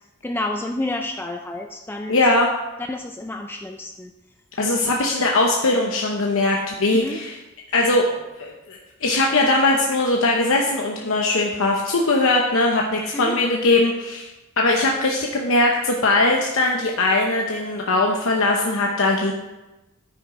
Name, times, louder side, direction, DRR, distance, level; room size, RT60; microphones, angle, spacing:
voice 1, 0.2-2.2 2.8-4.1 6.9-7.2 13.1-13.4, left 2 dB, 10° left, 4 dB, 0.4 m, -29 dB
voice 2, 2.1-2.5 4.6-7.4 7.7-8.1 8.4-14.3 14.6-19.3, left 2 dB, 65° left, 0 dB, 0.9 m, -20 dB
9.6 x 9.6 x 3.9 m, 1.0 s
head